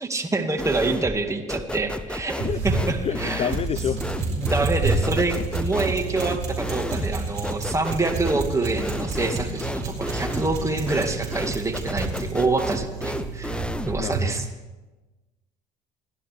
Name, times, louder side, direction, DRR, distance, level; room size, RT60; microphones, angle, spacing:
voice 1, 0.0-3.5 4.3-14.5, right 3 dB, 15° right, 4 dB, 2.0 m, -26 dB
sound 1, 0.6-1.2 1.5-14.1, left 1 dB, 5° left, 0.7 m, -32 dB
sound 2, 2.4-14.3, right 3 dB, 75° right, 4.5 m, -30 dB
voice 2, 3.0-4.3 5.0-5.2 14.0-14.5, left 9 dB, 30° left, 16 dB, 0.4 m, -29 dB
28.0 x 11.5 x 3.4 m, 1.2 s
figure-of-eight pair, 60°, 21 cm